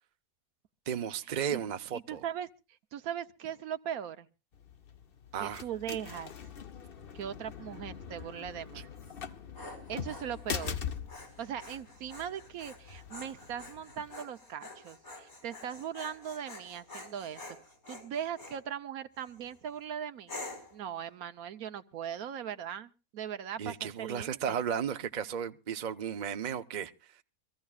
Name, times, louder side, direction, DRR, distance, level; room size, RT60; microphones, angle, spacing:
voice 1, 0.9-2.2 5.3-6.0 8.7-8.8 23.6-27.1, right 8 dB, 40° right, 0.8 m, -35 dB
voice 2, 2.1-2.5 2.9-4.3 5.4-6.3 7.1-8.9 9.9-10.8 11.4-17.4 17.9-20.4 20.7-24.6, right 9 dB, 80° right, 1.3 m, -39 dB
sound 1, 4.5-14.2, left 7 dB, 45° left, 1.0 m, -43 dB
Dog, 9.2-18.6 19.2-19.6 20.3-20.8, left 2 dB, 80° left, 5.4 m, -48 dB
24.0 x 15.0 x 2.4 m
omnidirectional pair, 1.5 m